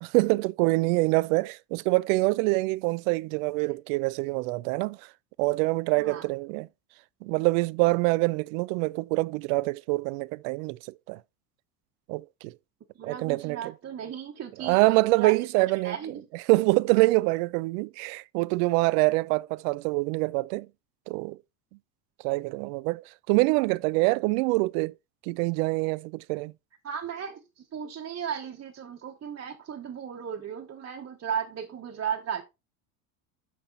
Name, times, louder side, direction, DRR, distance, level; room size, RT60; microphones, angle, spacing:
voice 1, 0.0-5.1 5.4-6.7 7.2-11.2 12.1-12.5 13.0-13.7 14.6-16.0 16.3-20.7 21.1-21.4 22.2-24.9 25.2-26.5, right 23 dB, 60° right, 0.5 m, -25 dB
voice 2, 13.0-14.8 15.1-15.3 15.8-16.2 26.8-32.4, right 8 dB, 30° right, 1.2 m, -35 dB
6.0 x 5.8 x 3.8 m
hypercardioid pair, 95°, 47 cm